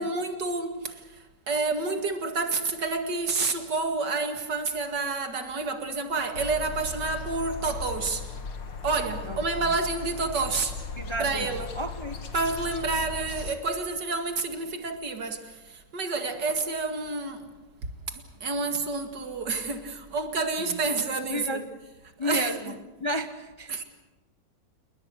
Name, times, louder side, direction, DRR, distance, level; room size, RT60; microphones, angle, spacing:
voice 1, 0.0-8.3 8.8-10.8 11.2-11.7 12.3-17.5 17.8-21.6 22.2-22.8 23.7-23.8, right 3 dB, 70° right, 2.7 m, -29 dB
sound 1, 6.3-13.5, left 4 dB, 80° left, 2.5 m, -37 dB
voice 2, 11.0-11.5 11.7-12.2 20.6-20.8 21.3-21.7 22.2-22.7 23.0-23.8, equal, 20° left, 0.9 m, -32 dB
29.5 x 20.0 x 6.4 m
omnidirectional pair, 2.0 m